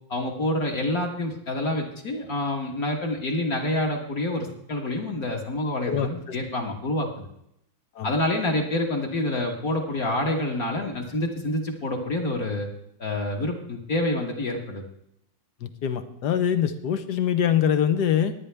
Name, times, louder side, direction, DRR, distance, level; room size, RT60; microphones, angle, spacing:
voice 1, 0.1-7.3 8.0-12.7 13.0-14.9, left 1 dB, 45° left, 0 dB, 1.9 m, -27 dB
voice 2, 15.6-18.3, left 9 dB, 60° left, 10 dB, 1.3 m, -24 dB
20.0 x 9.4 x 3.4 m, 0.74 s
omnidirectional pair, 2.3 m